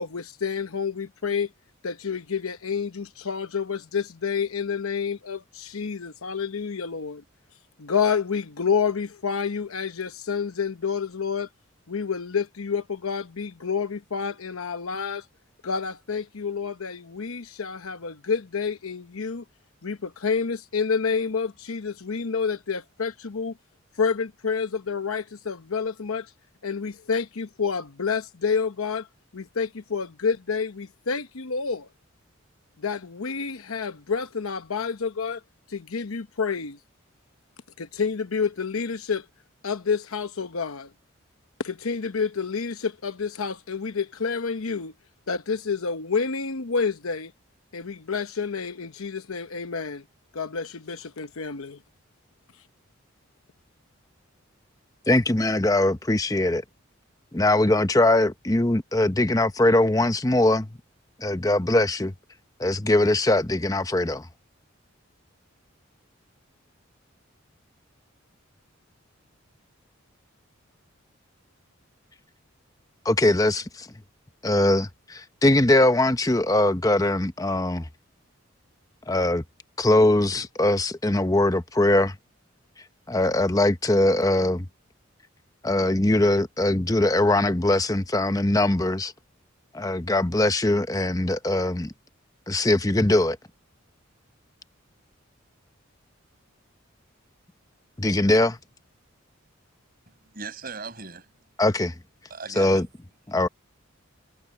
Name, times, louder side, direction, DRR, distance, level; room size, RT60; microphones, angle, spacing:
voice 1, 0.0-1.5 1.8-7.2 7.8-11.5 11.9-15.3 15.6-19.4 19.8-23.5 24.0-26.3 26.6-29.1 29.3-31.9 32.8-35.4 35.7-36.8 37.8-39.3 39.6-40.9 41.6-44.9 45.3-47.3 47.7-50.0 50.3-51.8, left 5 dB, 90° left, 0.9 m, -29 dB
voice 2, 55.1-56.6 57.3-60.8 61.2-62.1 62.6-64.3 73.0-73.9 74.4-77.9 79.1-79.4 79.8-82.2 83.1-84.7 85.6-89.1 89.7-91.9 92.5-93.4 98.0-98.6 101.6-101.9 102.6-102.9 103.3-103.5, left 1 dB, 15° left, 0.8 m, -21 dB
voice 3, 100.1-101.3 102.3-102.8, right 4 dB, 45° right, 6.2 m, -38 dB
head